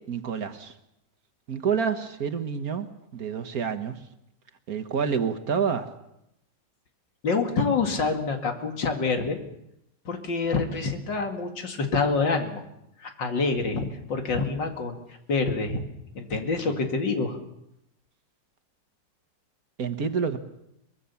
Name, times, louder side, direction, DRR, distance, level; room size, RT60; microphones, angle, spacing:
voice 1, 0.1-0.7 1.5-2.9 3.1-3.9 4.7-5.9 16.7-16.8 19.8-20.4, right 6 dB, 55° right, 10 dB, 1.7 m, -28 dB
voice 2, 7.2-9.4 10.0-12.6 13.0-15.0 15.3-15.8 16.1-17.4, left 4 dB, 80° left, 5 dB, 3.1 m, -26 dB
23.0 x 21.5 x 7.1 m, 0.81 s
omnidirectional pair, 2.0 m